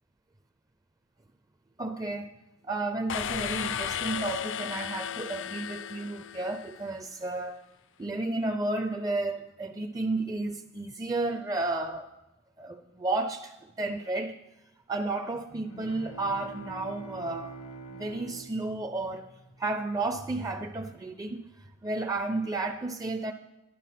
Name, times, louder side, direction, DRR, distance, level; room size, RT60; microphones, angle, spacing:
voice 1, 1.8-2.3 2.6-7.6 8.0-12.1 12.6-14.4 14.9-17.5 17.9-19.3 19.6-21.4 21.8-23.3, right 2 dB, 15° right, 4 dB, 0.4 m, -32 dB
sound 1, 3.1-6.9, left 8 dB, 60° left, 0.4 m, -34 dB
Bowed string instrument, 15.5-20.1, right 3 dB, 90° left, 1.6 m, -46 dB
12.0 x 11.0 x 5.8 m, 1.0 s
head